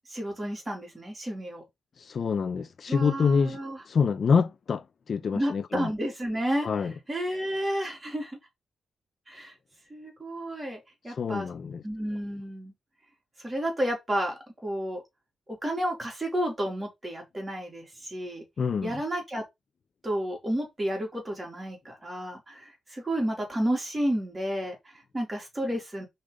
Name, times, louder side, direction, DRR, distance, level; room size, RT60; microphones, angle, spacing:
voice 1, 0.1-1.6 2.9-3.8 5.3-6.7 7.1-8.4 9.3-9.5 9.9-11.5 11.8-12.7 13.4-15.0 15.6-18.4 18.8-19.4 20.0-26.1, equal, 15° right, 3.0 m, -31 dB
voice 2, 2.0-3.6 3.9-5.9 6.6-6.9 11.2-11.8 18.6-19.0, left 5 dB, 50° left, 0.4 m, -26 dB
5.3 x 3.8 x 5.0 m
cardioid pair, 125°, 0 cm